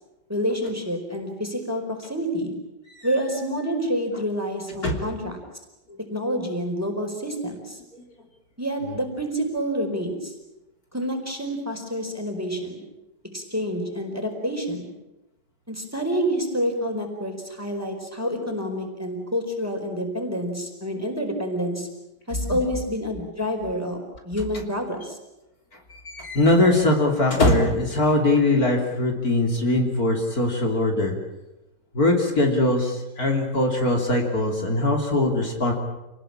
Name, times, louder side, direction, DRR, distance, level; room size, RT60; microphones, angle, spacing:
voice 1, 0.3-2.6 3.0-5.4 6.1-7.8 8.6-10.3 10.9-12.8 13.3-14.9 15.7-21.9 22.3-25.2, equal, 10° right, 4 dB, 4.5 m, -28 dB
voice 2, 3.0-3.7 4.7-5.0 7.9-8.0 8.8-9.0 22.5-22.6 24.4-24.6 25.9-31.2 31.9-35.7, left 2 dB, 50° left, 2 dB, 3.5 m, -22 dB
28.0 x 19.5 x 8.8 m, 0.97 s
omnidirectional pair, 2.0 m